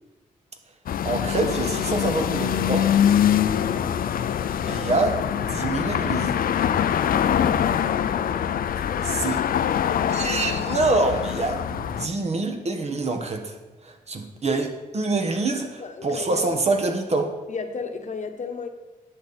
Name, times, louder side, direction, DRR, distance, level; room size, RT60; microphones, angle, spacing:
sound 1, 0.9-12.1, left 9 dB, 70° left, 0.5 m, -24 dB
voice 1, 1.0-2.9 4.1-4.2 4.7-6.4 9.0-9.4 10.1-13.5 13.8-17.3, right 3 dB, 45° right, 5 dB, 1.5 m, -26 dB
voice 2, 3.6-3.9 8.8-9.1 15.8-16.4 17.5-18.7, left 5 dB, 50° left, 6 dB, 1.1 m, -34 dB
10.5 x 7.0 x 4.3 m, 1.2 s
cardioid pair, 75°, 15 cm